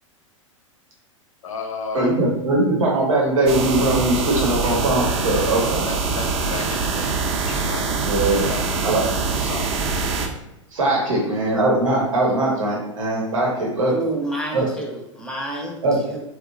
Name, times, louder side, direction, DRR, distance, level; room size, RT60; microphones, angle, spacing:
voice 1, 1.4-2.1 4.2-4.6 5.7-7.2 7.5-8.6 9.4-9.7, left 5 dB, 80° left, 3 dB, 0.5 m, -34 dB
voice 2, 1.9-5.8 8.0-8.5 8.8-9.3 10.7-13.9 14.5-14.7 15.8-16.0, right 2 dB, 80° right, -3 dB, 0.8 m, -21 dB
sound 1, 3.5-10.3, right 4 dB, 45° right, 0.5 m, -24 dB
voice 3, 13.9-15.8 16.1-16.2, right 1 dB, 5° left, 1 dB, 0.5 m, -29 dB
2.8 x 2.1 x 2.4 m, 0.88 s
figure-of-eight pair, 95°, 17 cm